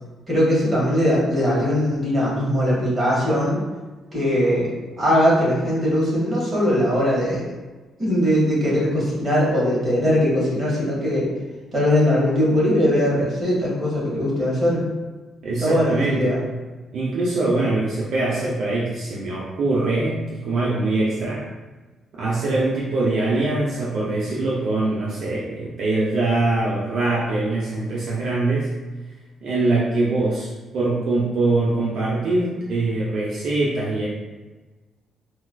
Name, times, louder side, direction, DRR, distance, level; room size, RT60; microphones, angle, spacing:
voice 1, 0.3-3.6 4.1-4.7 5.0-7.4 8.0-11.3 11.7-14.8 15.6-16.4, equal, 35° right, -6 dB, 1.5 m, -20 dB
voice 2, 15.4-16.3 16.9-21.4 22.2-28.7 29.4-34.1, right 2 dB, 70° right, -6 dB, 0.6 m, -23 dB
4.3 x 2.3 x 2.2 m, 1.2 s
cardioid pair, 90°, 0 cm